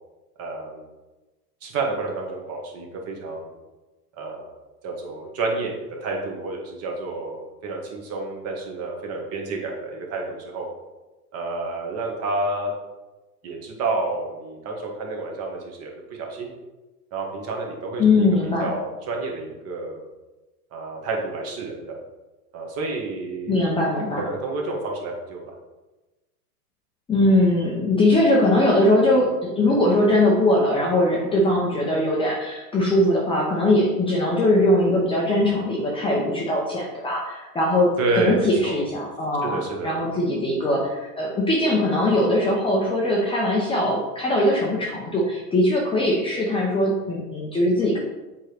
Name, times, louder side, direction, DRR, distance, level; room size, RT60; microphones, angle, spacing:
voice 1, 0.4-0.8 1.6-3.5 4.1-4.5 4.8-5.7 6.0-10.7 11.3-12.7 13.4-16.5 17.1-18.3 18.6-20.0 20.7-22.0 22.5-25.5 38.0-38.8 39.4-39.9, right 3 dB, 30° right, 0 dB, 1.5 m, -29 dB
voice 2, 18.0-18.7 23.5-24.2 27.1-48.0, left 1 dB, 10° left, -3 dB, 0.8 m, -21 dB
7.5 x 4.6 x 3.4 m, 1.1 s
hypercardioid pair, 130°, 48 cm